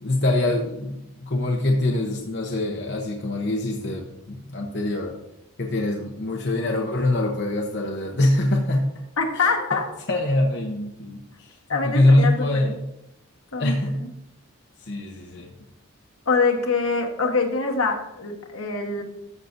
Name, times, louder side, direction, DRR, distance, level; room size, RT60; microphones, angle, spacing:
voice 1, 0.0-5.1 5.6-8.9 9.3-9.5 10.1-12.8 13.6-14.0 14.8-15.5, left 1 dB, 50° left, 0 dB, 0.9 m, -24 dB
voice 2, 9.2-9.9 11.7-12.7 13.5-13.7 14.0-14.1 16.3-19.0, left 4 dB, 75° left, 2 dB, 1.4 m, -24 dB
13.5 x 6.6 x 2.7 m, 0.83 s
head